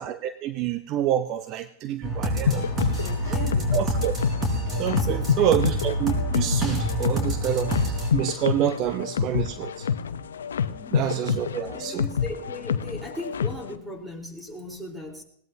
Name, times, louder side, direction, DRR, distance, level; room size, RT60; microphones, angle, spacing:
voice 1, 0.0-2.6 3.3-3.4 3.7-4.1 4.8-9.9 10.9-12.0, right 11 dB, 45° right, 11 dB, 0.7 m, -27 dB
sound 1, 2.0-8.1, equal, 30° right, 4.8 m, -27 dB
sound 2, 2.5-13.7, left 7 dB, 90° left, 0.7 m, -28 dB
voice 2, 2.8-3.7 4.9-5.7 10.7-11.2 11.6-15.2, left 1 dB, 10° right, 2 dB, 4.0 m, -38 dB
20.5 x 18.0 x 2.8 m, 0.64 s
hypercardioid pair, 105°, 0 cm